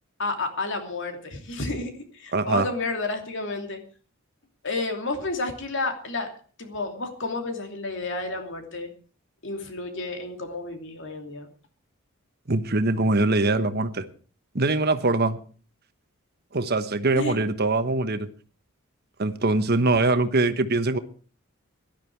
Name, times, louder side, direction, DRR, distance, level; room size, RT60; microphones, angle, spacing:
voice 1, 0.2-3.8 4.6-6.3 6.6-8.9 9.4-11.5 17.1-17.4, left 3 dB, 60° left, 5 dB, 2.8 m, -31 dB
voice 2, 2.3-2.6 12.5-14.1 14.5-15.4 16.5-18.3 19.2-21.0, right 2 dB, 50° right, 10 dB, 1.2 m, -23 dB
17.5 x 12.0 x 4.7 m, 0.39 s
head